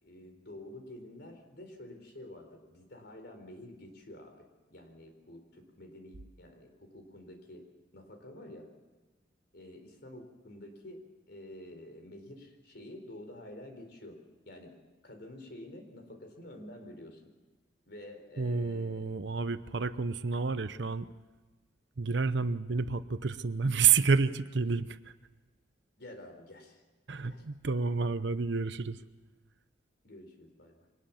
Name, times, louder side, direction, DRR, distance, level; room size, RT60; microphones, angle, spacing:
voice 1, 0.0-7.7 7.9-8.7 9.5-14.2 14.4-14.8 15.0-17.2 17.9-19.1 26.0-26.8 27.2-27.4 30.0-30.9, left 1 dB, 55° left, 5 dB, 4.2 m, -49 dB
voice 2, 18.4-21.1 22.0-25.1 27.1-29.0, right 5 dB, 60° right, 13 dB, 0.8 m, -29 dB
23.5 x 19.0 x 7.2 m, 1.3 s
head